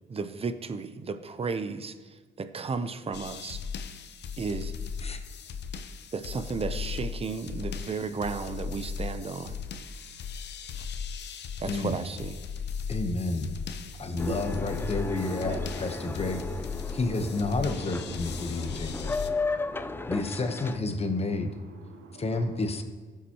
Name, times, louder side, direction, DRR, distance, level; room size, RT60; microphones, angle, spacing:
voice 1, 0.1-2.0 2.4-3.6 4.4-4.7 6.1-9.6 11.6-12.4, right 4 dB, 30° right, 11 dB, 0.7 m, -33 dB
sound 1, 3.1-19.3, left 6 dB, 60° left, 0.7 m, -37 dB
voice 2, 11.7-12.0 12.9-13.5 14.0-16.4 16.9-19.1 20.1-21.5 22.2-22.8, left 2 dB, 30° left, 6 dB, 1.0 m, -30 dB
voice 3, 14.1-22.7, right 5 dB, 85° right, 5 dB, 1.2 m, -47 dB
Boat Water vehicle, 14.2-20.8, left 3 dB, 10° left, 0.3 m, -35 dB
16.0 x 7.2 x 3.0 m, 1.4 s
cardioid pair, 90°, 20 cm